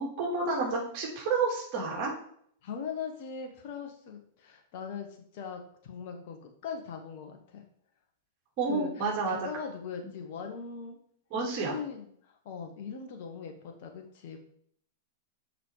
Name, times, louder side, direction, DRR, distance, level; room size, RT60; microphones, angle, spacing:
voice 1, 0.0-2.1 8.6-9.4 10.0-10.1 11.3-11.7, right 4 dB, 40° right, -2 dB, 3.0 m, -30 dB
voice 2, 2.6-7.6 8.7-11.0 11.6-14.4, left 6 dB, 50° left, 3 dB, 1.5 m, -40 dB
6.5 x 4.9 x 4.9 m, 0.64 s
figure-of-eight pair, 100°, 0 cm